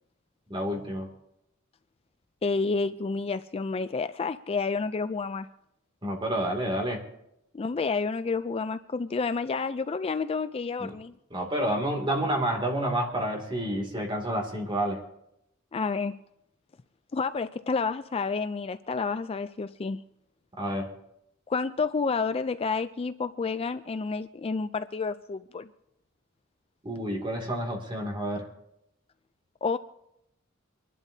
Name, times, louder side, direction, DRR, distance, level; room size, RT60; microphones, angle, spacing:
voice 1, 0.5-1.1 6.0-7.0 10.8-10.9 11.3-15.0 20.6-20.9 26.8-28.5, right 1 dB, 25° right, 2.5 m, -29 dB
voice 2, 2.4-5.5 7.5-11.1 15.7-16.1 17.1-20.0 21.5-25.7 29.6-29.8, left 4 dB, 30° left, 0.4 m, -29 dB
25.5 x 11.5 x 2.8 m
head